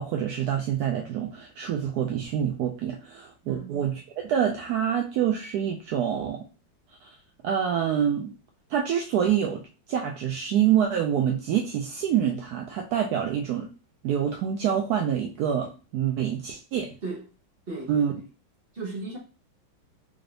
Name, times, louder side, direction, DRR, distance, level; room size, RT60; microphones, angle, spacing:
voice 1, 0.0-6.4 7.0-7.1 7.4-8.3 8.7-9.6 9.9-13.7 14.0-16.9 17.9-18.1, right 9 dB, 80° right, 1 dB, 0.8 m, -26 dB
voice 2, 3.5-3.8 17.0-17.2 17.7-18.0 18.7-19.2, right 3 dB, 45° right, -2 dB, 0.8 m, -35 dB
3.8 x 2.5 x 3.3 m, 0.33 s
omnidirectional pair, 2.2 m